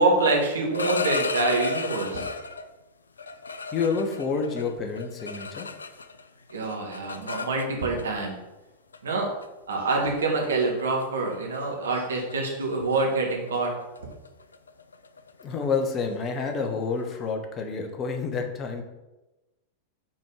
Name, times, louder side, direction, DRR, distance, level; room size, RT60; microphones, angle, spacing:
voice 1, 0.0-2.3 6.5-8.4 9.0-9.3 9.7-13.7, right 3 dB, 70° right, 0 dB, 1.5 m, -25 dB
sound 1, 0.5-2.7 3.2-6.2 6.5-8.0 8.9-9.1 9.4-9.7 10.2-10.5 10.8-11.0 11.3-11.6 11.8-17.2, left 4 dB, 75° left, 0.4 m, -34 dB
voice 2, 3.7-5.7 15.4-18.8, left 5 dB, 30° left, 4 dB, 1.0 m, -28 dB
5.9 x 4.5 x 4.9 m, 1.0 s
figure-of-eight pair, 90°, 0 cm